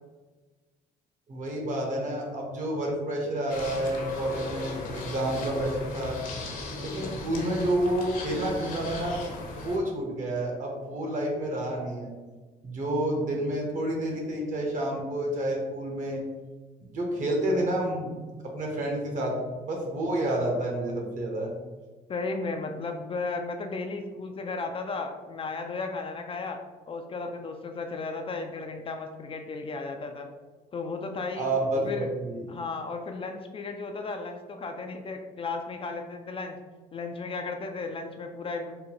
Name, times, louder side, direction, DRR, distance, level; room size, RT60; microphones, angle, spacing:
voice 1, 1.3-6.2 6.8-9.3 9.5-12.1 12.6-16.3 16.9-18.1 18.4-21.5 31.4-32.4, right 1 dB, 50° right, 0 dB, 1.2 m, -29 dB
sound 1, 3.5-9.8, left 2 dB, 55° left, 0.8 m, -37 dB
voice 2, 22.1-26.6 26.9-30.3 30.7-31.5 31.8-32.1 32.5-36.6 36.9-38.7, left 3 dB, 35° left, 4 dB, 0.4 m, -34 dB
3.8 x 2.2 x 4.5 m, 1.3 s
cardioid pair, 110°, 17 cm